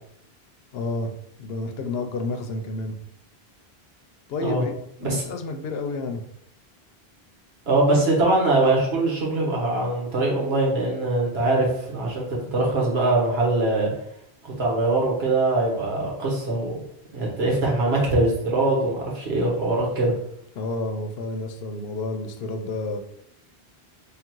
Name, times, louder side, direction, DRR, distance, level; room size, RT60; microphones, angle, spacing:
voice 1, 0.7-1.1 1.4-3.0 4.3-4.7 5.0-6.2 20.5-23.0, left 2 dB, 75° left, 6 dB, 0.8 m, -30 dB
voice 2, 7.7-13.9 14.4-16.8 17.1-20.1, right 2 dB, 75° right, -3 dB, 1.4 m, -22 dB
3.4 x 2.4 x 4.5 m, 0.74 s
omnidirectional pair, 1.1 m